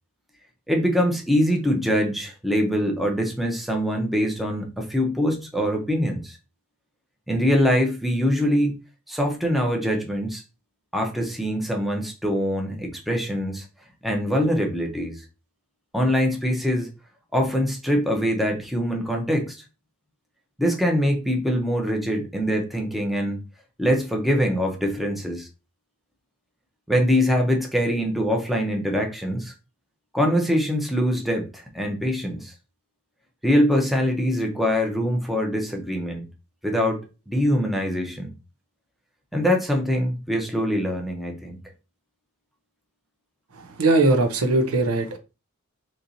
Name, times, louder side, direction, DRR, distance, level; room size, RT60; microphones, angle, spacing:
voice 1, 0.7-6.4 7.3-8.7 9.1-10.4 10.9-13.6 14.0-15.2 15.9-16.9 17.3-19.6 20.6-23.4 23.8-25.5 26.9-29.5 30.1-32.5 33.4-36.3 36.6-38.3 39.3-41.6, equal, ahead, 1 dB, 0.7 m, -23 dB
voice 2, 43.8-45.2, right 2 dB, 90° right, 6 dB, 0.7 m, -20 dB
4.1 x 3.0 x 2.6 m, 0.29 s
head